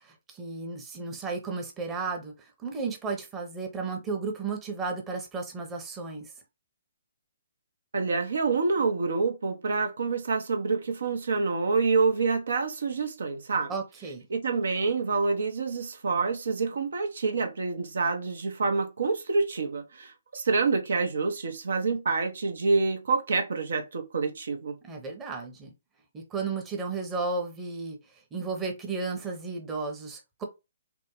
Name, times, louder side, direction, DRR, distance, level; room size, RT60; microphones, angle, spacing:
voice 1, 0.0-6.3 13.7-14.3 24.8-25.7 26.1-28.0 28.3-30.4, right 4 dB, 15° right, 0.8 m, -34 dB
voice 2, 7.9-13.7 14.3-24.8, right 4 dB, 70° right, 0.7 m, -27 dB
3.5 x 2.1 x 3.0 m
figure-of-eight pair, 135°, 0 cm